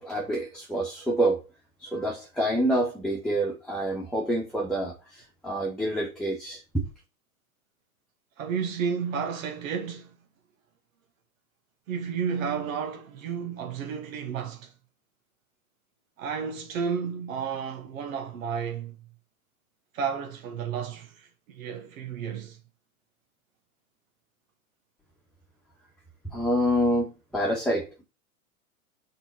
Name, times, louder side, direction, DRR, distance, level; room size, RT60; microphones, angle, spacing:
voice 1, 0.0-1.5 1.8-6.8 26.2-28.0, right 1 dB, ahead, 1.4 m, -27 dB
voice 2, 8.4-10.1 11.9-14.7 16.2-19.0 19.9-22.6, right 6 dB, 65° right, 1.3 m, -32 dB
6.1 x 4.0 x 5.5 m
hypercardioid pair, 105°, 43 cm